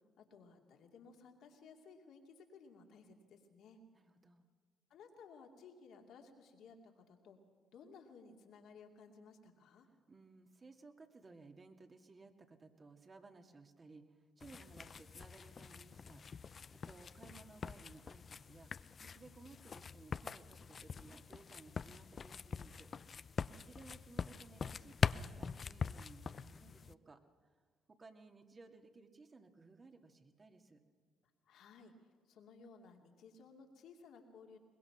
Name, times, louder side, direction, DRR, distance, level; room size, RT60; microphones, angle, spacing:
voice 1, 0.2-3.8 4.9-7.4 7.7-9.9 31.5-34.6, left 5 dB, 70° left, 3 dB, 2.5 m, -58 dB
voice 2, 3.9-4.5 10.1-18.7 19.0-22.9 23.5-27.2 27.9-30.8, right 3 dB, 35° right, 5 dB, 2.3 m, -59 dB
sound 1, 14.4-26.9, left 6 dB, 45° left, 0.5 m, -43 dB
22.0 x 21.0 x 6.0 m, 1.5 s
hypercardioid pair, 55°, 0 cm